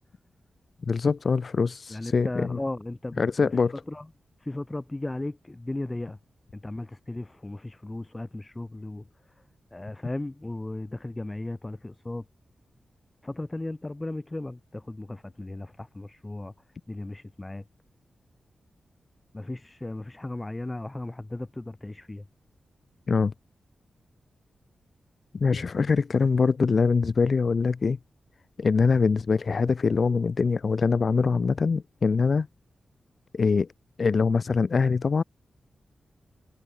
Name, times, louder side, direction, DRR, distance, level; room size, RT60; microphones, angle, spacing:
voice 1, 0.9-2.6 3.2-3.7 23.1-23.3 25.3-28.0 28.6-32.5 33.3-33.7 34.0-35.2, left 5 dB, 45° left, 1.4 m, -23 dB
voice 2, 1.9-3.5 3.9-4.1 4.4-6.2 6.5-9.1 9.7-12.2 13.2-16.5 16.9-17.6 19.3-22.2 25.5-25.6, left 2 dB, 15° left, 2.1 m, -36 dB
wide cardioid pair, 150°, 0 cm